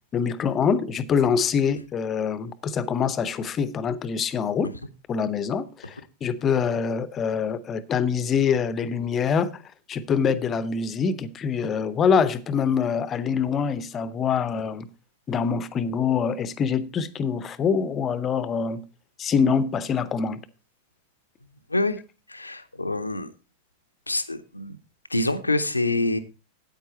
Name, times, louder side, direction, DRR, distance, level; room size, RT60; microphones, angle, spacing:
voice 1, 0.1-4.7 5.1-9.6 9.9-14.9 15.3-18.8 19.2-20.4, left 6 dB, 25° left, 0.7 m, -25 dB
voice 2, 22.3-23.3 24.1-24.8 25.1-26.2, left 2 dB, 85° left, 0.8 m, -26 dB
9.2 x 8.8 x 4.2 m
figure-of-eight pair, 90°, 0 cm